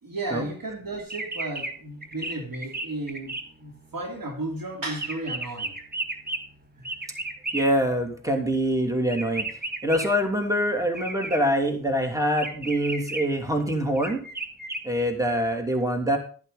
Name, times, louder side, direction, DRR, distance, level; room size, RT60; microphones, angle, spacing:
voice 1, 0.0-3.3 3.6-5.8 6.8-6.9, right 2 dB, 80° right, 1 dB, 3.1 m, -34 dB
sound 1, 1.0-1.7 2.0-3.4 3.8-7.7 9.1-10.1 10.9-11.4 12.4-13.2 14.0-14.8, right 2 dB, 30° right, 1.8 m, -33 dB
voice 2, 7.5-9.5 9.8-14.2 14.8-16.2, equal, 10° right, 2 dB, 3.0 m, -24 dB
11.5 x 11.0 x 4.1 m, 0.41 s
cardioid pair, 55°, 34 cm